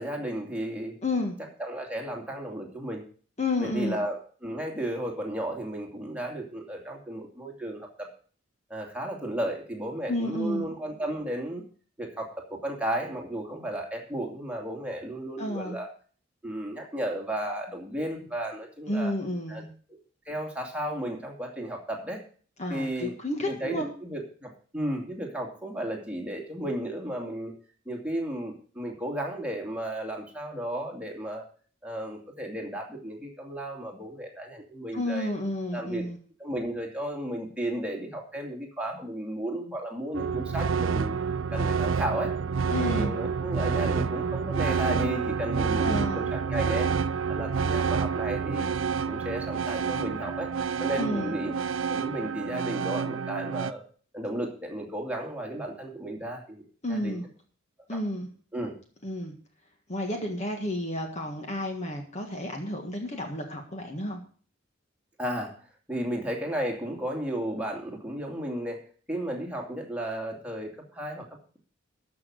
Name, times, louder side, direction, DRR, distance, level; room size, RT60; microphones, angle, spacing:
voice 1, 0.0-1.0 1.6-3.0 3.6-8.1 8.7-11.6 12.0-15.9 16.4-19.1 19.5-19.6 19.9-20.0 20.3-22.2 22.7-23.1 23.4-27.5 27.9-31.4 31.8-35.3 35.7-36.1 36.4-41.2 41.5-42.3 42.8-46.9 47.3-48.7 49.1-50.5 50.8-51.6 51.9-53.8 54.1-56.6 56.9-57.3 57.9-58.0 58.5-58.8 65.2-65.6 65.9-68.8 69.1-71.3, right 1 dB, 5° right, 0 dB, 2.6 m, -34 dB
voice 2, 1.0-1.4 3.4-4.0 10.1-10.7 15.4-15.8 18.9-19.7 22.6-23.9 34.9-36.2 42.7-43.1 45.8-46.2 50.9-51.3 56.8-57.3 57.9-58.3 59.0-59.3 59.9-64.2, left 1 dB, 35° left, 3 dB, 1.7 m, -31 dB
sound 1, 40.1-53.7, right 6 dB, 85° right, 0.5 m, -28 dB
13.5 x 6.1 x 6.4 m, 0.43 s
head